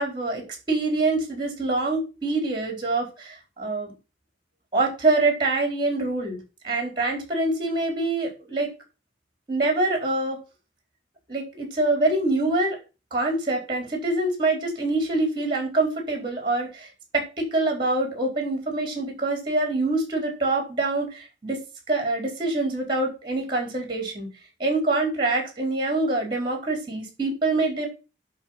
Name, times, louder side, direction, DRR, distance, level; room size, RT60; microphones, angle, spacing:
voice 1, 0.0-3.9 4.7-6.4 6.6-8.7 9.5-10.4 11.3-12.8 13.1-16.9 17.1-21.6 21.9-24.3 24.6-27.9, right 2 dB, 25° right, 2 dB, 4.3 m, -25 dB
11.5 x 3.9 x 7.4 m, 0.31 s
head